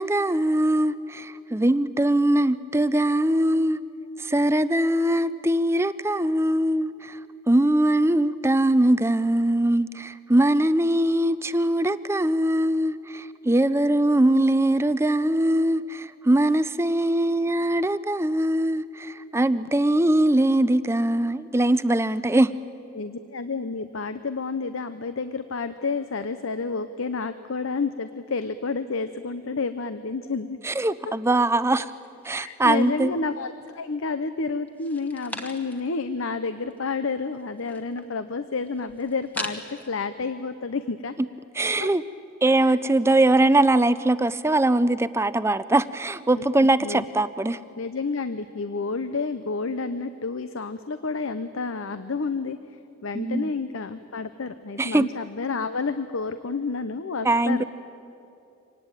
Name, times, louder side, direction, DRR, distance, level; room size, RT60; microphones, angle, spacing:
voice 1, 0.0-3.8 4.2-7.2 7.5-22.5 30.6-31.9 32.2-33.1 41.6-42.0 42.4-47.6 53.1-53.5 54.8-55.1 57.2-57.6, right 1 dB, 10° right, 15 dB, 0.5 m, -22 dB
voice 2, 22.9-30.6 31.7-31.9 32.4-41.1 41.8-41.9 46.3-47.0 47.8-52.6 53.0-57.6, left 4 dB, 75° left, 11 dB, 0.7 m, -30 dB
sound 1, 31.8-33.1 33.5-34.2 34.7-36.0 36.3-36.4 36.6-39.9, equal, 10° left, 1.3 m, -40 dB
25.0 x 19.0 x 9.0 m, 2.7 s
head